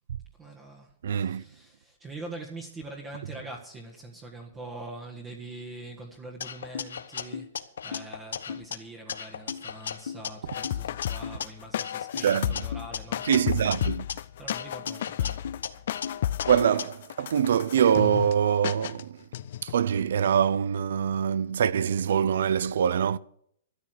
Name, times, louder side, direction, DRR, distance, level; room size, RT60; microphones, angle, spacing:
voice 1, 0.4-13.3 14.4-15.4, right 2 dB, 15° right, 1.6 m, -43 dB
voice 2, 1.0-1.4 12.2-12.6 13.3-14.1 16.5-19.2 19.6-23.2, right 8 dB, 70° right, 0.6 m, -24 dB
sound 1, 6.4-8.8 9.1-11.5 11.8-14.1 14.5-16.8, left 7 dB, 90° left, 1.1 m, -36 dB
sound 2, 10.5-18.3 18.6-19.0 19.3-19.7, left 12 dB, 55° left, 0.5 m, -33 dB
13.5 x 9.8 x 6.4 m
hypercardioid pair, 160°, 0 cm